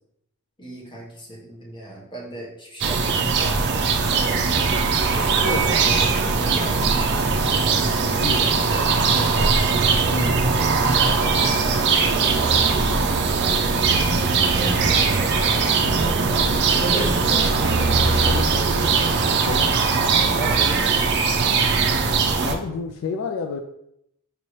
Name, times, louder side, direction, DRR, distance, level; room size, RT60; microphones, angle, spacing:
voice 1, 0.6-4.7 5.0-7.7 12.1-12.7 14.5-14.9 16.3-17.5 20.3-20.9, right 1 dB, 20° left, -4 dB, 1.2 m, -35 dB
sound 1, 2.8-22.6, right 4 dB, 50° right, 0.5 m, -20 dB
voice 2, 5.4-5.8 8.2-9.4 10.1-11.2 13.7-13.8 18.1-19.0 19.3-19.8 22.4-23.6, left 5 dB, 65° left, 6 dB, 0.3 m, -32 dB
5.3 x 2.8 x 3.1 m, 0.78 s
head